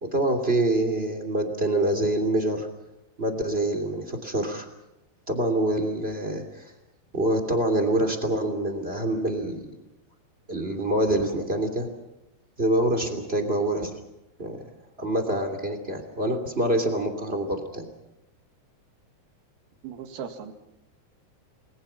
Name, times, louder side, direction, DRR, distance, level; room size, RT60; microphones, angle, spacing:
voice 1, 0.0-2.7 3.2-4.7 5.3-6.7 7.1-9.7 10.5-11.9 12.6-13.9 14.4-14.6 15.0-17.9, right 1 dB, 15° right, 7 dB, 2.5 m, -25 dB
voice 2, 19.8-20.5, right 7 dB, 70° right, 6 dB, 3.8 m, -37 dB
29.5 x 21.0 x 5.8 m, 0.90 s
omnidirectional pair, 4.6 m